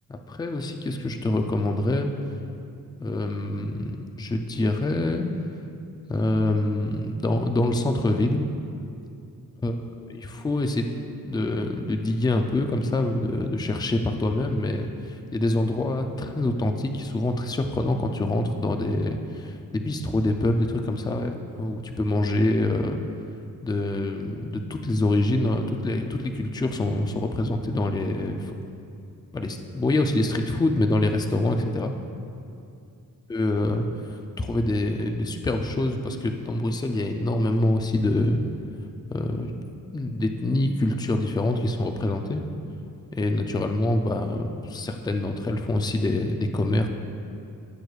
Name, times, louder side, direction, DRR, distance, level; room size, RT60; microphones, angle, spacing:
voice 1, 0.1-2.1 3.0-5.3 6.1-8.4 9.6-9.7 10.1-10.9 11.2-23.0 23.6-28.6 29.3-32.0 33.3-33.9 34.1-38.4 39.1-39.5 39.9-42.4 43.1-46.9, left 2 dB, 10° left, 5 dB, 0.4 m, -25 dB
15.0 x 8.0 x 2.4 m, 2.5 s
wide cardioid pair, 160°, 35 cm